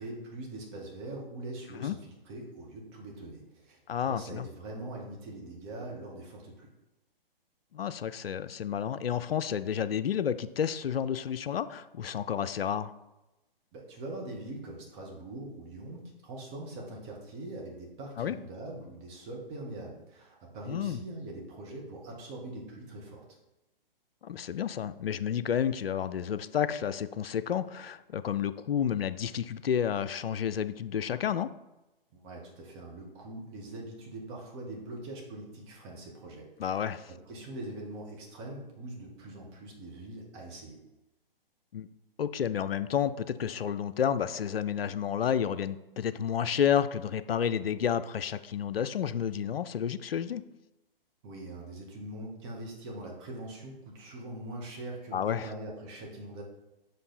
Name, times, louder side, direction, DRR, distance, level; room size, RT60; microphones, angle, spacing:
voice 1, 0.0-6.7 13.7-23.4 32.1-40.8 51.2-56.4, right 1 dB, 30° right, -2 dB, 1.8 m, -42 dB
voice 2, 3.9-4.5 7.7-12.9 18.2-18.4 20.7-21.0 24.2-31.5 36.6-37.1 41.7-41.9 42.2-50.4 55.1-55.5, left 8 dB, 75° left, 12 dB, 0.4 m, -30 dB
6.1 x 5.1 x 4.2 m, 0.98 s
figure-of-eight pair, 125°, 29 cm